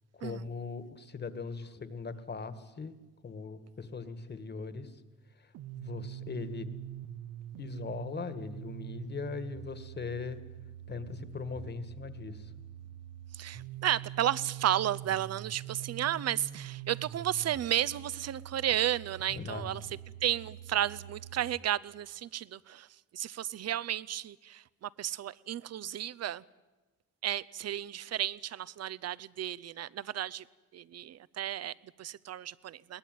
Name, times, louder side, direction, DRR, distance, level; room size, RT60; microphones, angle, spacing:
voice 1, 0.1-2.9 3.2-4.9 5.8-6.7 7.6-10.4 10.9-12.5 19.3-19.7, left 4 dB, 35° left, 13 dB, 2.0 m, -40 dB
sound 1, 5.5-21.6, right 11 dB, 85° right, 0.9 m, -45 dB
voice 2, 13.3-19.9 20.2-26.4 27.2-30.4 30.7-33.0, right 11 dB, 55° right, 20 dB, 0.8 m, -33 dB
22.0 x 19.0 x 9.3 m, 1.2 s
cardioid pair, 90°, 30 cm